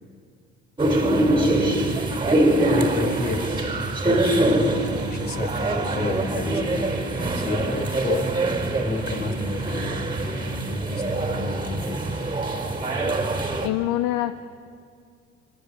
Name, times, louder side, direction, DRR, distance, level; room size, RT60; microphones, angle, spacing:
sound 1, 0.8-13.7, right 2 dB, 15° right, 3.4 m, -24 dB
voice 1, 1.2-1.9 2.7-3.6 3.9-8.4 8.8-12.2, left 3 dB, 30° left, 6 dB, 4.1 m, -31 dB
voice 2, 13.6-14.3, left 15 dB, 55° left, 12 dB, 0.9 m, -24 dB
29.5 x 26.0 x 7.1 m, 2.3 s
figure-of-eight pair, 60°, 34 cm